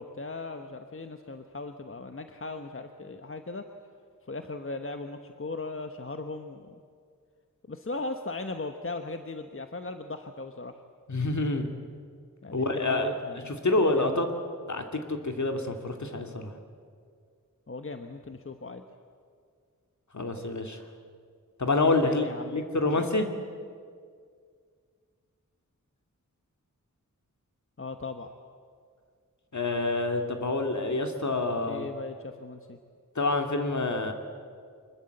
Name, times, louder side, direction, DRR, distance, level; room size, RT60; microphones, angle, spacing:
voice 1, 0.0-3.6 4.3-6.8 7.7-10.8 12.4-14.2 17.7-18.8 21.8-22.7 22.9-23.1 27.8-28.3 31.7-32.8, left 3 dB, 40° left, 6 dB, 1.1 m, -38 dB
voice 2, 11.1-11.7 12.5-13.1 13.5-14.3 14.7-16.5 20.1-20.8 21.6-22.3 22.5-23.3 29.5-31.9 33.2-34.1, left 2 dB, 60° left, 5 dB, 2.5 m, -27 dB
25.0 x 21.5 x 7.9 m, 2.1 s
wide cardioid pair, 80°, 33 cm